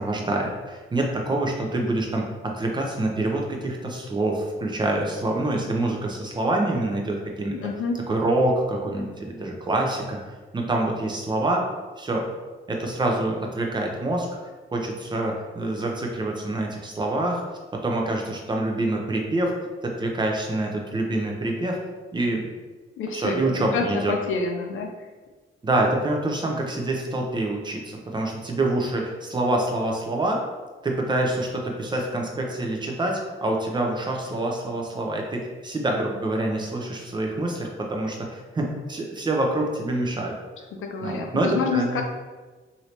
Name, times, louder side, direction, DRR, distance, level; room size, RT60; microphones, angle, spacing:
voice 1, 0.0-2.2 2.6-7.6 8.1-10.2 10.5-11.6 12.0-12.2 12.7-14.3 14.7-17.4 17.8-19.5 19.8-21.8 22.1-22.5 23.1-24.2 25.6-30.4 30.8-40.4 41.0-42.0, right 2 dB, 20° right, 0 dB, 0.5 m, -26 dB
voice 2, 7.6-8.0 23.0-24.9 40.7-42.0, left 4 dB, 75° left, 3 dB, 0.5 m, -28 dB
3.1 x 2.7 x 2.8 m, 1.3 s
cardioid pair, 125°, 21 cm